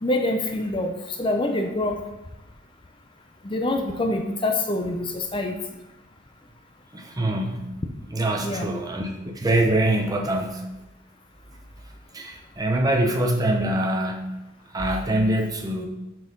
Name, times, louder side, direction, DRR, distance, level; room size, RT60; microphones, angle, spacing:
voice 1, 0.0-2.0 3.4-5.6 8.4-8.8, left 2 dB, 25° left, 4 dB, 0.6 m, -25 dB
voice 2, 6.9-7.7 8.1-10.7 12.1-14.4 14.7-15.8, right 1 dB, 20° right, 2 dB, 0.8 m, -24 dB
6.1 x 5.4 x 5.4 m, 0.97 s
head